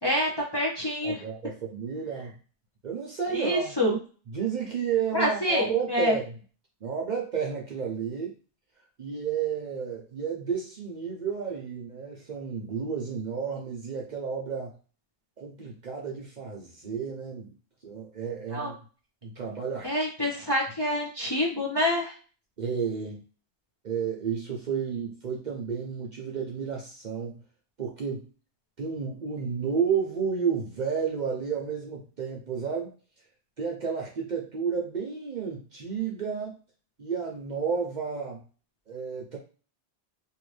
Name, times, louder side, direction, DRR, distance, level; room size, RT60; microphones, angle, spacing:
voice 1, 0.0-1.2 3.3-4.0 5.1-6.2 18.5-18.7 19.8-22.1, left 1 dB, 25° left, -3 dB, 0.6 m, -27 dB
voice 2, 1.0-2.4 2.8-4.0 4.3-6.4 6.8-8.3 9.0-14.8 15.4-17.6 17.8-18.8 19.2-19.9 22.6-23.2 23.8-27.4 27.8-28.3 28.8-32.9 33.6-36.6 37.0-38.4 38.9-39.4, right 6 dB, 50° right, -1 dB, 0.6 m, -31 dB
2.7 x 2.6 x 3.2 m, 0.37 s
omnidirectional pair, 1.2 m